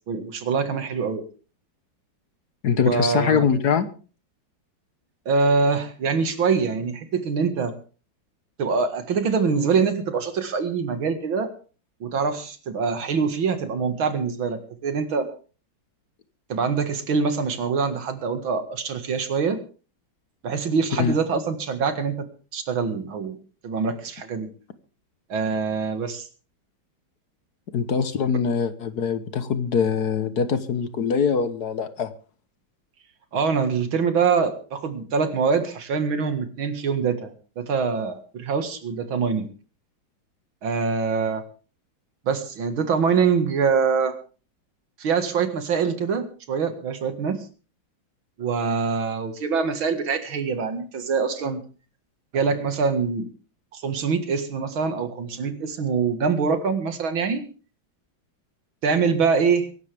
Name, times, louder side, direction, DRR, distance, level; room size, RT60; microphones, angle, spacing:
voice 1, 0.1-1.2 2.9-3.5 5.3-7.7 8.6-11.5 12.0-15.3 16.5-19.6 20.4-22.3 22.5-24.5 25.3-26.2 33.3-39.5 40.6-41.4 42.3-44.1 45.0-47.5 48.4-51.6 52.3-53.3 53.7-57.5 58.8-59.7, right 5 dB, 85° right, 8 dB, 2.6 m, -24 dB
voice 2, 2.6-3.9 20.9-21.1 27.7-32.1, left 6 dB, 55° left, 12 dB, 1.5 m, -23 dB
23.5 x 12.0 x 3.5 m, 0.38 s
omnidirectional pair, 2.1 m